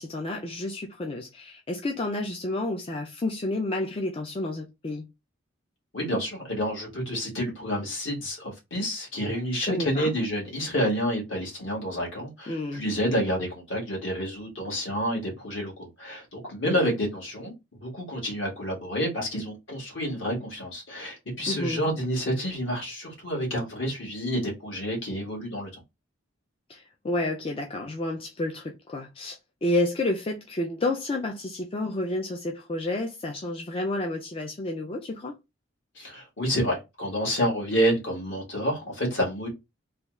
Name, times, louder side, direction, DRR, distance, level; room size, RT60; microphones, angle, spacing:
voice 1, 0.0-5.1 9.6-10.1 12.5-12.8 16.7-16.8 21.5-21.8 26.7-35.3, left 2 dB, 30° left, 0.4 m, -30 dB
voice 2, 5.9-17.5 17.8-25.8 35.9-39.5, equal, 65° left, 1.7 m, -29 dB
3.3 x 2.3 x 3.0 m
head